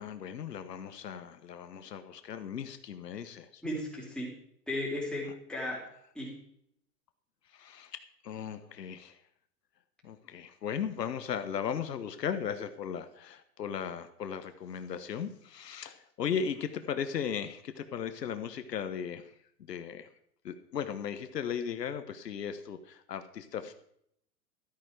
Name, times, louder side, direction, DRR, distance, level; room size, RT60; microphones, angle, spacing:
voice 1, 0.0-3.6 7.5-9.2 10.0-19.3 19.6-20.1 20.4-23.7, left 7 dB, 80° left, 10 dB, 1.2 m, -37 dB
voice 2, 3.6-4.3 4.7-5.9 6.1-6.3, left 1 dB, ahead, -4 dB, 4.1 m, -35 dB
13.0 x 8.9 x 4.9 m, 0.70 s
hypercardioid pair, 115°, 48 cm